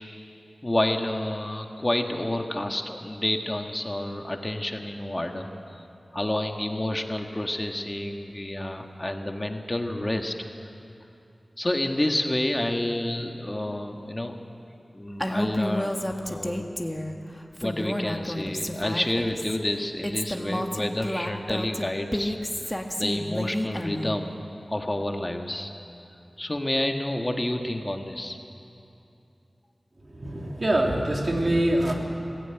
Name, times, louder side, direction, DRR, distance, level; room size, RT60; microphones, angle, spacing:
voice 1, 0.6-5.8 6.1-10.3 11.6-14.3 14.9-15.9 16.3-16.7 17.6-22.4 23.0-24.4 24.7-25.7 26.4-28.4, left 1 dB, 25° left, 4 dB, 1.6 m, -29 dB
Female speech woman speaking, 15.2-17.1 17.5-19.6 20.0-24.2, left 1 dB, 10° left, 1.8 m, -30 dB
voice 2, 30.0-31.9, right 1 dB, 55° right, 0 dB, 3.4 m, -24 dB
22.0 x 15.5 x 9.2 m, 2.8 s
wide cardioid pair, 50°, 0 cm